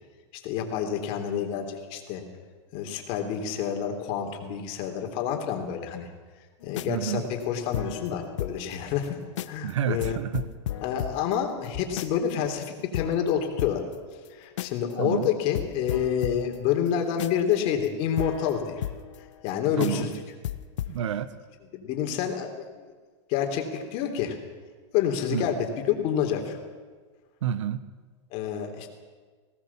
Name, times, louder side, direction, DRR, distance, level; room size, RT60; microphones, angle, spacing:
voice 1, 0.4-2.2 2.7-6.1 6.6-9.2 9.5-10.2 10.8-13.9 14.3-18.8 19.4-20.1 21.7-22.8 23.3-24.4 24.9-26.6 28.3-28.9, left 8 dB, 40° left, 4 dB, 3.4 m, -28 dB
sound 1, 6.6-8.8 9.0-9.1 9.4-9.7 10.0-12.3 12.6-12.7 12.9-14.9 15.2-15.3 15.6-19.5 19.8-20.1 20.4-21.0, left 11 dB, 75° left, 1.1 m, -35 dB
voice 2, 6.9-7.3 9.6-10.5 15.0-15.3 19.8-20.1 20.9-21.3 25.3-25.5 27.4-27.8, right 9 dB, 80° right, 14 dB, 1.3 m, -29 dB
20.5 x 18.0 x 7.3 m, 1.5 s
supercardioid pair, 145°, 16 cm